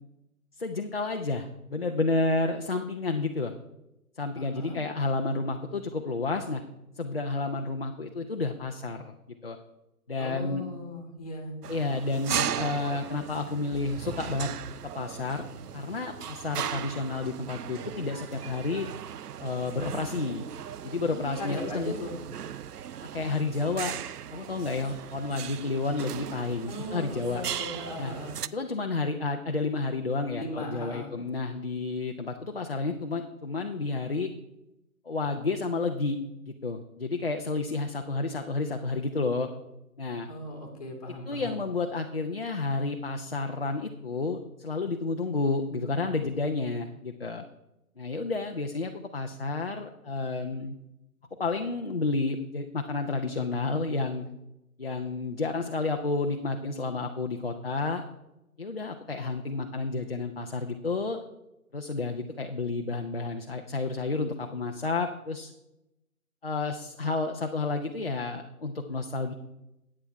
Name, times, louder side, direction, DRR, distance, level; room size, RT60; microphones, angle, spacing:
voice 1, 0.6-3.5 4.2-6.6 7.0-9.2 9.4-9.6 10.1-10.7 11.7-14.5 14.9-15.5 15.7-18.9 19.4-20.4 20.8-22.0 23.1-23.9 24.3-27.4 28.0-28.1 28.5-34.3 35.1-36.2 36.4-39.5 40.0-40.3 41.3-47.4 48.0-50.7 51.4-54.2 54.8-58.0 58.6-61.2 61.7-65.5 66.4-69.3, left 3 dB, 40° left, 3 dB, 0.6 m, -30 dB
voice 2, 4.3-4.8 10.2-11.5 21.1-22.1 26.7-28.3 30.3-31.1 40.3-41.6, left 1 dB, 25° left, 2 dB, 1.6 m, -38 dB
sound 1, 11.6-28.5, right 9 dB, 80° right, 0.5 m, -37 dB
10.0 x 8.7 x 4.6 m, 0.90 s
figure-of-eight pair, 165°, 46 cm